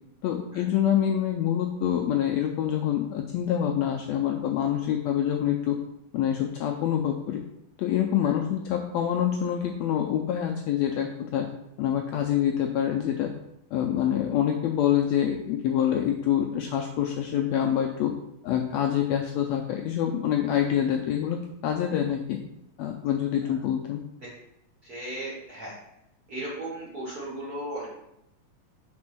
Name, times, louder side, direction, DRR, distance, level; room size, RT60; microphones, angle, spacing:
voice 1, 0.2-5.8 6.1-7.4 7.8-11.5 11.8-13.3 13.7-18.1 18.4-22.4 22.8-24.0, left 10 dB, 80° left, 3 dB, 1.6 m, -26 dB
voice 2, 24.8-25.7 26.3-27.9, right 1 dB, 45° right, -6 dB, 1.2 m, -36 dB
5.2 x 4.3 x 6.0 m, 0.83 s
omnidirectional pair, 3.6 m